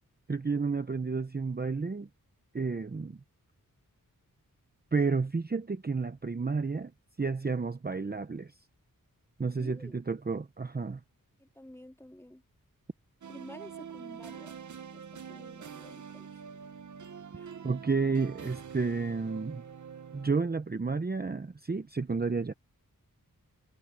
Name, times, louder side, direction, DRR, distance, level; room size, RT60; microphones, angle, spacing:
voice 1, 0.3-2.1 2.5-3.2 4.9-6.9 7.2-8.5 9.4-11.0 17.6-19.6 20.1-22.5, right 4 dB, 30° right, 0.8 m, -31 dB
voice 2, 9.6-9.9 11.4-12.4 13.3-14.5 14.9-16.4 17.3-17.5, left 1 dB, 5° left, 2.5 m, -50 dB
sound 1, 13.2-20.6, right 7 dB, 55° right, 0.9 m, -45 dB
wide cardioid pair, 80°, 34 cm